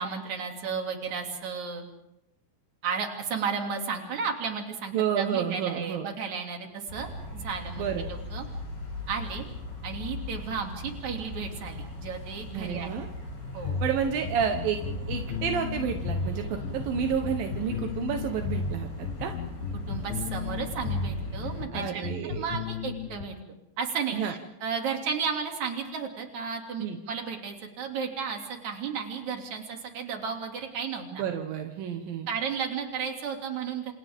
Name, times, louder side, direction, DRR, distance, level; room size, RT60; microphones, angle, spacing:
voice 1, 0.0-1.8 2.8-8.4 9.1-9.4 9.8-12.9 13.5-13.8 19.9-23.3 23.8-31.2 32.3-33.9, right 6 dB, 45° right, 2 dB, 3.3 m, -33 dB
voice 2, 4.9-6.1 7.8-8.1 12.5-13.1 13.8-14.8 15.1-19.3 21.7-22.5 24.1-24.3 26.8-27.0 31.1-32.3, right 8 dB, 70° right, 4 dB, 2.2 m, -30 dB
sound 1, 6.9-21.7, left 2 dB, 45° left, 9.8 m, -38 dB
sound 2, 13.6-23.2, left 5 dB, 75° left, 2.1 m, -34 dB
30.0 x 27.5 x 3.7 m, 0.86 s
omnidirectional pair, 5.7 m